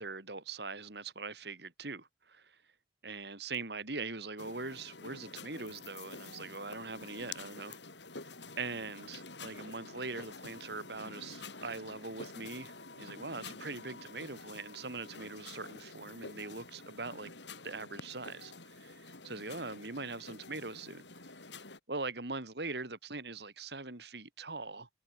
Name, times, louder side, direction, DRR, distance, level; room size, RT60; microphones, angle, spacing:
voice 1, 0.0-2.6 3.0-7.8 8.6-17.3 17.6-21.0 21.9-24.9, right 3 dB, 70° right, 2.8 m, -42 dB
sound 1, 4.4-21.8, left 3 dB, 80° left, 7.4 m, -49 dB
head